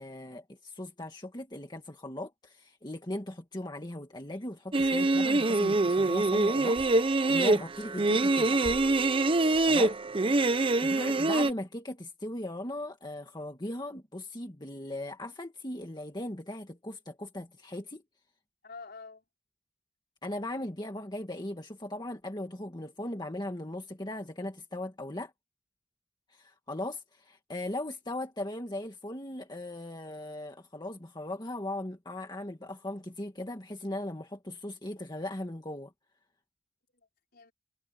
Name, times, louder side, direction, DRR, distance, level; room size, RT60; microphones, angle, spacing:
voice 1, 0.0-8.6 9.7-9.9 10.8-18.0 20.2-25.3 26.3-35.9, left 1 dB, 20° left, 1.8 m, -38 dB
sound 1, 4.7-11.5, right 2 dB, 30° right, 0.6 m, -25 dB
voice 2, 9.4-10.1 10.4-10.9 18.6-19.2 36.9-37.1 37.3-37.5, left 4 dB, 55° left, 5.1 m, -48 dB
head